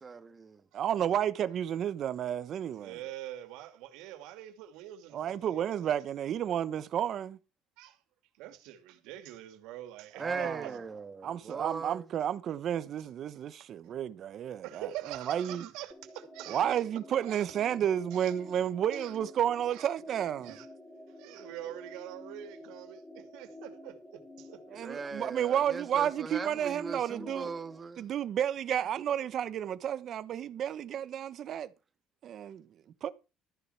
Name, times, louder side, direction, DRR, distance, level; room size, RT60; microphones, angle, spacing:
voice 1, 0.0-0.7 10.2-12.1 24.8-28.1, right 4 dB, 25° right, 1.7 m, -39 dB
voice 2, 0.7-3.0 5.1-7.4 10.1-10.8 11.2-15.7 16.5-20.5 24.7-27.5 28.0-31.7 32.2-32.7 33.0-33.1, right 10 dB, 50° right, 1.1 m, -31 dB
voice 3, 2.8-6.0 7.8-8.0 8.4-10.8 13.8-13.9 14.6-16.6 17.2-17.5 18.1-18.3 18.9-19.1 19.7-19.9 20.4-20.7 21.1-24.6, right 13 dB, 85° right, 2.7 m, -45 dB
sound 1, 15.9-27.8, left 1 dB, ahead, 2.3 m, -50 dB
13.5 x 6.6 x 5.9 m
cardioid pair, 135°, 0 cm